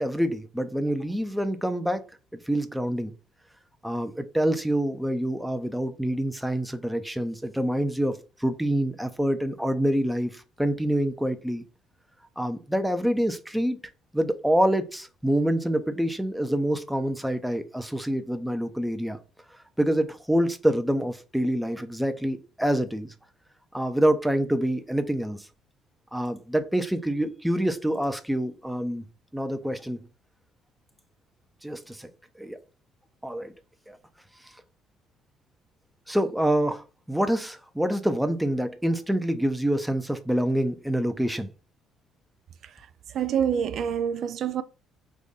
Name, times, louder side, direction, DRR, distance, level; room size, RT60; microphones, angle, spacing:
voice 1, 0.0-2.0 2.5-3.1 3.8-11.6 12.4-13.8 14.1-19.2 19.8-23.1 23.7-25.5 26.1-29.1 29.3-30.0 31.6-32.1 32.4-32.6 33.2-33.5 33.9-34.0 34.4-34.5 36.1-41.5, right 1 dB, 5° right, 0.6 m, -26 dB
voice 2, 43.1-44.6, right 8 dB, 60° right, 0.3 m, -27 dB
3.6 x 2.6 x 3.9 m
supercardioid pair, 80°, 0 cm